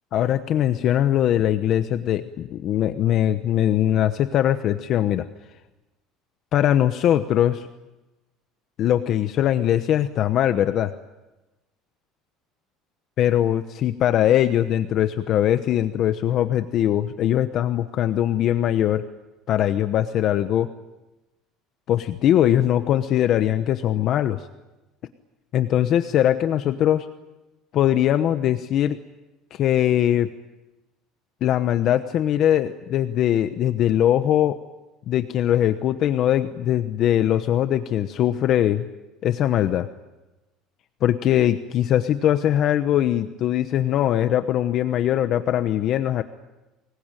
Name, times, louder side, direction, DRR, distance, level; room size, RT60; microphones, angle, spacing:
voice 1, 0.1-5.3 6.5-7.7 8.8-10.9 13.2-19.0 19.5-20.7 21.9-24.5 25.5-27.1 27.7-29.0 29.5-30.3 31.4-34.6 35.1-38.9 39.2-39.9 41.0-46.2, left 11 dB, 45° left, 10 dB, 1.0 m, -21 dB
25.5 x 21.0 x 9.1 m, 1.0 s
cardioid pair, 150°, 0 cm